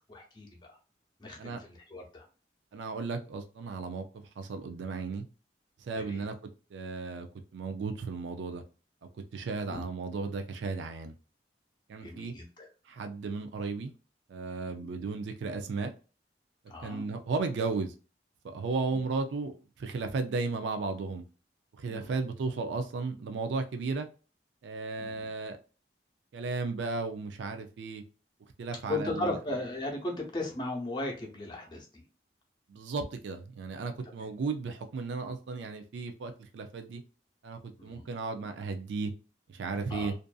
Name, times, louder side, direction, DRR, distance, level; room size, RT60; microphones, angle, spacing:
voice 1, 0.1-0.8 1.2-2.3 5.9-6.2 9.7-9.8 12.0-12.7 14.8-14.9 16.7-17.0 21.9-22.2 25.0-25.3 28.9-31.9 37.8-38.0 39.9-40.1, left 2 dB, 25° left, 0 dB, 0.7 m, -36 dB
voice 2, 2.7-4.0 4.4-5.2 5.8-6.3 6.7-7.3 7.5-8.6 9.3-11.1 11.9-12.3 12.9-13.9 14.3-15.9 16.8-17.9 18.4-21.2 21.8-24.1 24.6-25.6 26.3-28.0 28.6-29.4 32.7-37.0 37.4-39.1 39.5-40.1, right 4 dB, 85° right, 6 dB, 0.4 m, -34 dB
2.5 x 2.5 x 2.2 m, 0.35 s
head